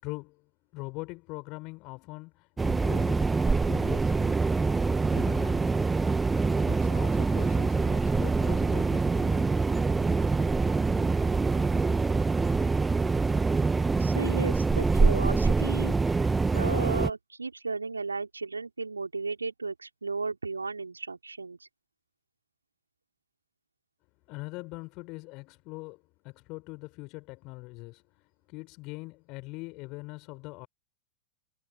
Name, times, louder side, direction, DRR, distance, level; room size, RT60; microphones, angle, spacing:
voice 1, 0.0-4.5 5.0-5.8 6.6-9.6 24.3-30.7, left 25 dB, 40° left, 5.8 m, -42 dB
sound 1, 2.6-17.1, right 4 dB, 10° right, 1.1 m, -25 dB
voice 2, 14.0-21.7, right 4 dB, 80° right, 4.5 m, -34 dB
figure-of-eight pair, 90°, 0 cm